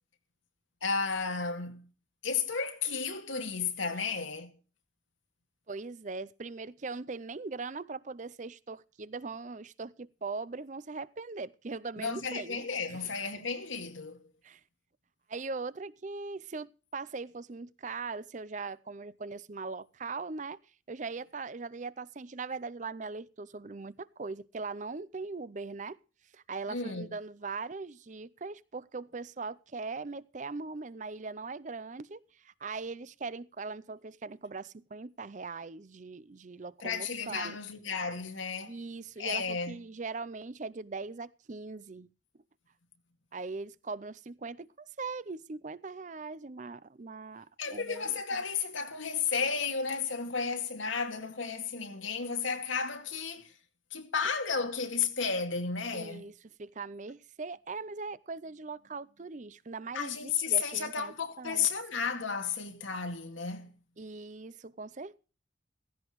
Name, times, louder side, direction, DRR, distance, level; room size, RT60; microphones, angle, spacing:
voice 1, 0.8-1.9 2.2-4.5 12.0-14.2 26.7-27.1 36.8-38.8 39.2-39.8 47.6-53.5 53.9-56.3 59.9-63.7, left 5 dB, 85° left, 2.3 m, -33 dB
voice 2, 5.7-12.6 12.9-13.1 14.4-14.6 15.3-20.6 20.9-26.0 26.3-37.6 38.7-42.1 43.3-48.2 55.9-56.3 56.6-61.7 64.0-65.2, right 4 dB, 40° right, 0.5 m, -40 dB
16.0 x 16.0 x 3.0 m
head